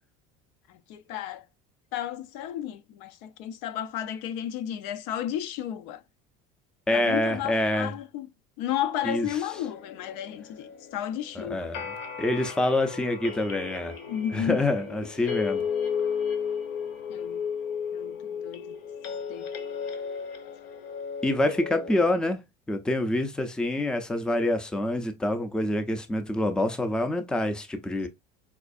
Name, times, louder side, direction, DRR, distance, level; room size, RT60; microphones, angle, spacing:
voice 1, 0.7-1.4 1.9-6.0 6.9-8.3 8.6-11.7 14.1-14.6 17.1-17.4 17.9-18.8 19.3-19.5, left 10 dB, 90° left, 0.5 m, -33 dB
voice 2, 6.9-7.9 9.0-9.3 11.4-13.9 14.3-15.6 21.2-22.4 22.7-28.1, left 1 dB, 5° left, 0.4 m, -26 dB
sound 1, 9.5-22.1, left 6 dB, 70° left, 0.9 m, -34 dB
4.4 x 2.4 x 2.4 m
cardioid pair, 145°, 21 cm